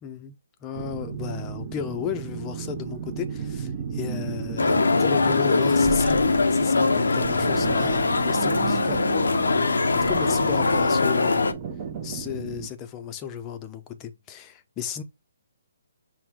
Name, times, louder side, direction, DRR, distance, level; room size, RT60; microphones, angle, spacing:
voice 1, 0.0-0.3 0.6-9.0 9.9-11.4 12.0-15.0, left 8 dB, 20° left, 0.6 m, -34 dB
sound 1, 0.7-12.7, right 7 dB, 30° right, 0.7 m, -34 dB
sound 2, 4.6-11.5, left 3 dB, 90° left, 0.6 m, -22 dB
5.8 x 2.2 x 3.6 m
hypercardioid pair, 160°, 0 cm